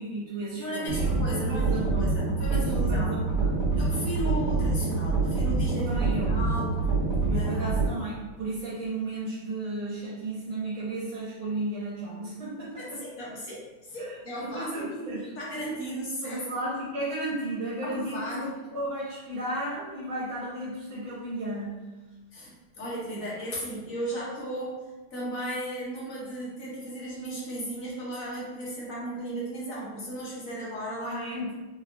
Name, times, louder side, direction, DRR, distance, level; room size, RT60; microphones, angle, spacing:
voice 1, 0.0-3.6 5.8-6.3 7.3-13.0 14.0-14.2 14.4-15.3 16.2-21.8 31.0-31.5, right 1 dB, 75° right, -7 dB, 1.6 m, -34 dB
voice 2, 0.5-3.1 3.8-6.0 6.3-6.7 7.3-7.6 12.8-16.5 17.8-18.5 22.3-24.8 25.1-31.2, right 1 dB, 60° left, -6 dB, 0.9 m, -35 dB
sound 1, 0.9-7.9, right 3 dB, 55° right, 1.6 m, -26 dB
4.5 x 2.3 x 2.5 m, 1.2 s
omnidirectional pair, 2.3 m